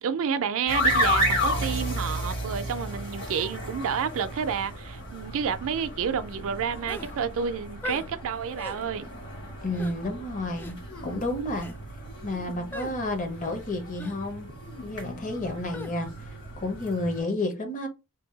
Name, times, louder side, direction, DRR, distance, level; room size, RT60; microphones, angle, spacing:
voice 1, 0.0-9.1, right 7 dB, 65° right, 0.4 m, -30 dB
sound 1, 0.7-17.2, equal, 55° left, 1.4 m, -33 dB
sound 2, 6.9-7.1 7.8-8.1 8.6-8.8 9.7-9.9 10.5-10.7 11.5-11.8 12.7-12.9 14.0-14.2 15.7-15.9, left 1 dB, 10° left, 0.3 m, -38 dB
voice 2, 9.6-10.8 11.0-11.7 12.2-14.5 14.8-16.3 16.6-17.9, left 2 dB, 35° left, 0.7 m, -31 dB
sound 3, 10.9-11.5 12.3-13.0 13.4-13.8 14.6-15.8, left 3 dB, 75° left, 1.0 m, -46 dB
2.6 x 2.2 x 3.8 m
head